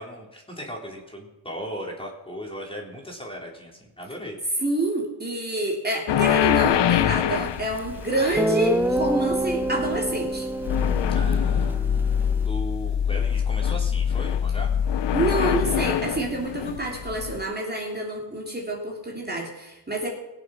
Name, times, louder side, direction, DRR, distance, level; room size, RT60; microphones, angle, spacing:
voice 1, 0.0-4.4 11.1-14.8, equal, 10° left, -1 dB, 3.4 m, -37 dB
voice 2, 4.6-10.5 15.1-20.1, right 1 dB, 20° right, -1 dB, 3.0 m, -27 dB
sound 1, 6.1-17.4, left 9 dB, 60° left, 0.7 m, -24 dB
Guitar, 7.8-7.9 8.4-12.5, right 1 dB, 5° right, 0.7 m, -27 dB
19.5 x 7.6 x 6.4 m, 0.98 s
cardioid pair, 85°, 47 cm